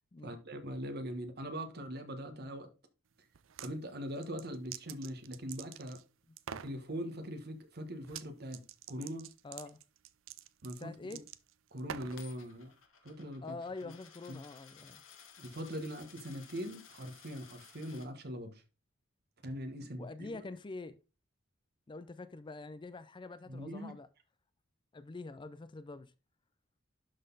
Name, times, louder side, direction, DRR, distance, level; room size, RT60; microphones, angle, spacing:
voice 1, 0.2-2.7 3.6-6.0 6.5-9.3 10.6-11.1 11.7-12.7 13.0-13.6 13.8-13.9 14.3-14.4 15.4-18.6 19.4-20.3 23.5-23.9, equal, 55° right, 1.4 m, -42 dB
sound 1, 3.3-3.7 4.2-6.0 6.4-6.8 8.0-8.3 8.5-12.3, right 9 dB, 70° right, 0.5 m, -46 dB
voice 2, 9.4-9.8 10.8-11.2 13.4-15.0 19.8-21.0 21.9-24.1 24.9-26.1, left 3 dB, 25° left, 0.4 m, -45 dB
Coin (dropping), 12.1-18.1, left 7 dB, 75° left, 1.5 m, -57 dB
11.5 x 4.1 x 3.9 m
head